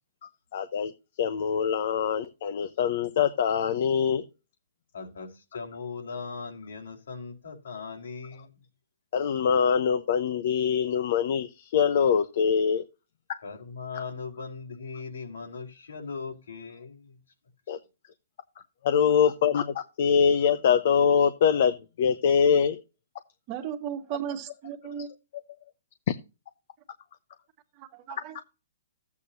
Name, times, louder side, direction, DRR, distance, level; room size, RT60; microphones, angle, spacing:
voice 1, 0.5-0.9 1.2-4.2 9.1-12.8 17.7-17.8 18.8-22.8 26.1-26.2, left 7 dB, 50° left, 0.9 m, -24 dB
voice 2, 4.9-8.6 13.4-17.2, left 5 dB, 80° left, 4.1 m, -39 dB
voice 3, 23.5-25.1 27.8-28.4, right 9 dB, 30° right, 1.7 m, -35 dB
13.5 x 8.4 x 2.7 m
hypercardioid pair, 165°, 0 cm